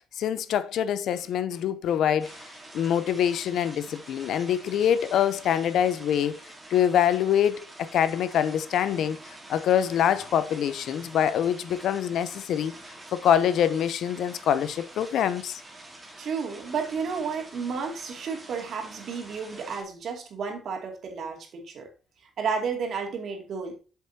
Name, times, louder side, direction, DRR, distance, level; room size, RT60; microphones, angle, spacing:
voice 1, 0.0-2.4 2.7-6.4 6.7-9.2 9.5-12.7 13.1-15.6, left 9 dB, 75° left, 0.6 m, -25 dB
sound 1, 2.2-19.8, right 1 dB, 20° right, 3.0 m, -46 dB
voice 2, 16.2-21.9 22.4-23.8, right 5 dB, 65° right, 2.4 m, -32 dB
7.6 x 7.1 x 2.8 m
cardioid pair, 90°, 0 cm